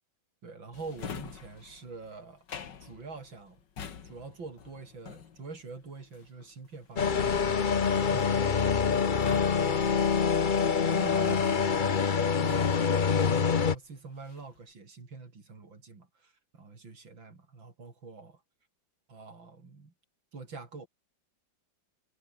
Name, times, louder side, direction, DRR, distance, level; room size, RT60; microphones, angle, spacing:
voice 1, 0.4-2.4 2.8-3.6 4.0-7.6 8.1-8.7 9.1-9.2 10.9-18.4 19.1-19.9 20.3-20.9, right 4 dB, 85° right, 4.9 m, -45 dB
Drawer open or close, 0.7-12.0 12.4-13.7 14.1-14.6, left 7 dB, 65° left, 2.4 m, -46 dB
sound 1, 7.0-13.7, left 6 dB, 35° left, 0.8 m, -25 dB
omnidirectional pair, 2.0 m